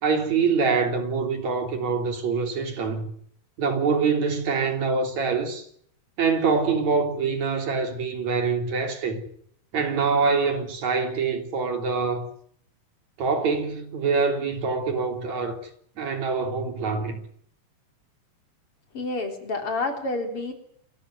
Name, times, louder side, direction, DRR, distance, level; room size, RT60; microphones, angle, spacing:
voice 1, 0.0-3.1 3.6-5.7 6.2-9.2 9.7-12.3 13.2-15.6 16.0-17.2, right 5 dB, 70° right, 4.7 m, -25 dB
voice 2, 18.9-20.5, left 2 dB, 50° left, 4.5 m, -29 dB
27.5 x 14.0 x 9.4 m
omnidirectional pair, 3.4 m